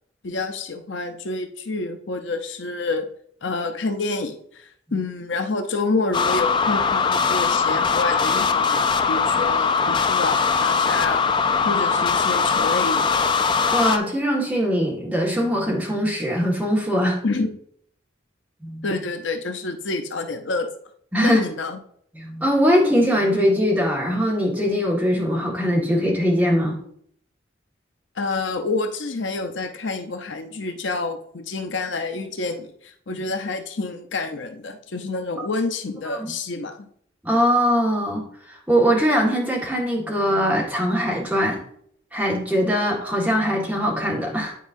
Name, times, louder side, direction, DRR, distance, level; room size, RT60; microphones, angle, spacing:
voice 1, 0.2-3.1 3.4-11.2 11.6-13.3 17.2-17.5 18.8-20.7 21.2-21.8 28.2-36.8, left 3 dB, 70° left, 6 dB, 0.7 m, -28 dB
sound 1, 6.1-14.0, left 5 dB, 25° left, 0.4 m, -21 dB
voice 2, 13.7-17.2 18.6-18.8 21.1-21.4 22.2-26.8 35.4-35.5 36.1-36.3 37.2-41.6 42.1-44.5, equal, 10° right, -3 dB, 1.7 m, -21 dB
9.3 x 4.6 x 2.6 m, 0.64 s
head